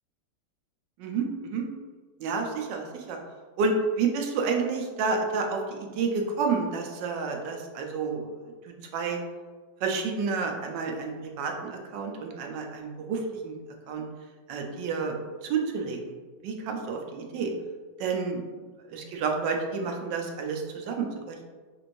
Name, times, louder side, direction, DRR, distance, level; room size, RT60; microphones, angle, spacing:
voice 1, 1.0-1.6 2.2-3.2 3.6-8.3 8.7-9.2 9.8-13.5 13.9-14.0 14.5-15.1 15.4-16.1 16.4-17.5 18.0-18.4 18.9-21.4, right 4 dB, 85° right, 2 dB, 1.3 m, -30 dB
5.2 x 3.1 x 2.5 m, 1.4 s
omnidirectional pair, 1.9 m